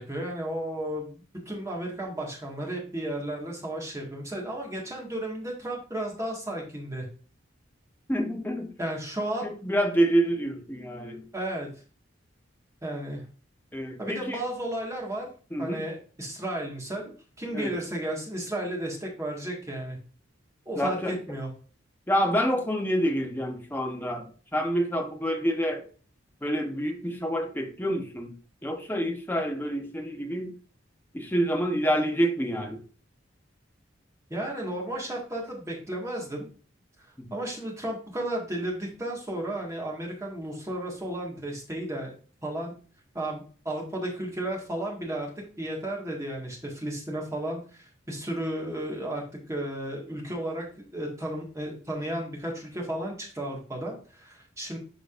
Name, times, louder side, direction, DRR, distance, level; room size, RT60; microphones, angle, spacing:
voice 1, 0.0-7.1 8.8-9.5 11.3-11.7 12.8-13.2 14.0-15.3 15.6-20.0 20.7-21.5 34.3-36.5 37.0-37.1 37.3-42.1 42.4-42.7 43.1-45.3 45.6-50.7 50.9-54.8, right 1 dB, 15° right, 1.7 m, -33 dB
voice 2, 8.1-8.7 9.4-11.2 13.7-14.4 15.5-15.8 17.5-17.8 20.8-21.2 22.1-24.2 24.5-25.8 26.4-28.3 28.6-30.5 31.1-32.8 37.2-37.3, equal, 10° left, 1.0 m, -27 dB
11.5 x 4.0 x 2.5 m
head